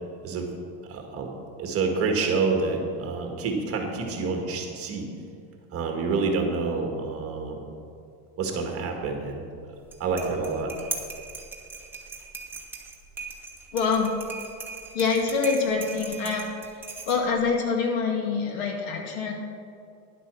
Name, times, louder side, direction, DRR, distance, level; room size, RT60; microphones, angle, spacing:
voice 1, 0.8-1.3 1.6-5.1 5.7-7.6 8.4-9.4 10.0-10.7, right 4 dB, 30° right, 2 dB, 1.8 m, -28 dB
sound 1, 9.8-17.5, right 4 dB, 5° right, 1.3 m, -39 dB
voice 2, 13.7-14.1 14.9-16.5 17.1-19.3, left 5 dB, 65° left, 2 dB, 2.3 m, -25 dB
11.0 x 8.1 x 6.3 m, 2.5 s
supercardioid pair, 150°, 43 cm